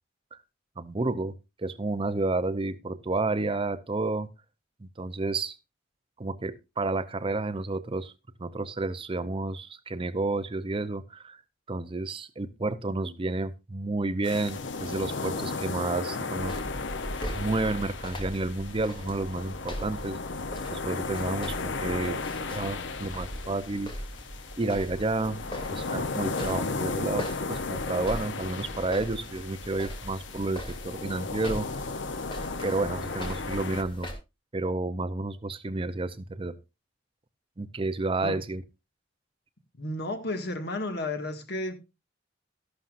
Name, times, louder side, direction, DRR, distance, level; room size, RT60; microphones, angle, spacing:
voice 1, 0.8-4.3 4.8-5.6 6.2-8.1 8.4-11.4 11.7-16.5 17.3-20.2 20.7-22.2 22.5-23.9 24.6-25.4 25.7-31.7 32.6-34.1 34.5-36.5 37.6-38.6, right 2 dB, 30° right, 0.6 m, -30 dB
sound 1, 14.2-33.8, left 4 dB, 80° left, 0.8 m, -35 dB
sound 2, 16.3-34.1, equal, 30° left, 2.7 m, -40 dB
voice 2, 39.8-41.8, left 2 dB, 65° left, 2.0 m, -32 dB
13.5 x 11.5 x 2.6 m
head